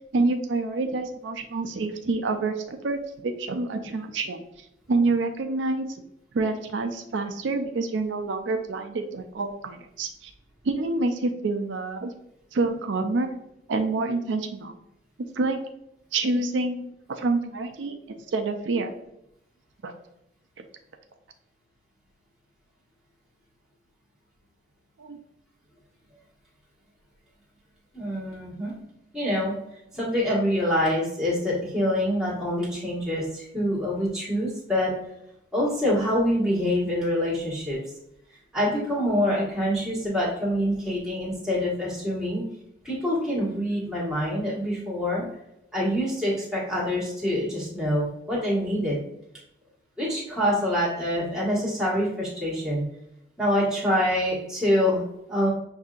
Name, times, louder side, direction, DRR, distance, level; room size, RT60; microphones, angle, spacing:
voice 1, 0.0-6.0 6.3-10.3 10.6-12.1 12.5-13.4 13.7-14.8 15.4-15.6 16.1-18.9 19.8-19.9 20.6-20.7 25.0-25.2, right 3 dB, 80° right, 5 dB, 0.4 m, -27 dB
voice 2, 27.9-28.7 29.1-29.5 29.9-34.9 35.5-37.8 38.5-42.4 42.8-45.2 45.7-49.0 50.0-52.8 53.4-55.5, equal, 5° right, -6 dB, 1.5 m, -25 dB
6.5 x 2.7 x 2.5 m, 0.81 s
head